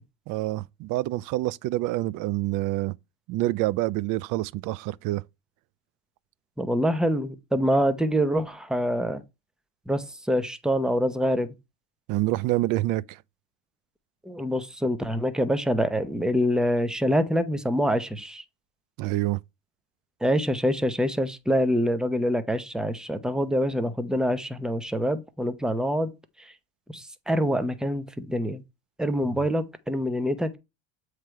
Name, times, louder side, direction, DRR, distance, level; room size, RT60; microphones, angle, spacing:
voice 1, 0.3-3.0 3.3-5.2 12.1-13.2 19.0-19.4, right 17 dB, 55° right, 0.4 m, -27 dB
voice 2, 6.6-9.2 9.9-11.5 14.2-18.4 20.2-26.1 26.4-26.5 26.9-28.6 29.0-30.6, equal, ahead, 0.7 m, -25 dB
7.5 x 3.2 x 4.7 m
supercardioid pair, 100°, 38 cm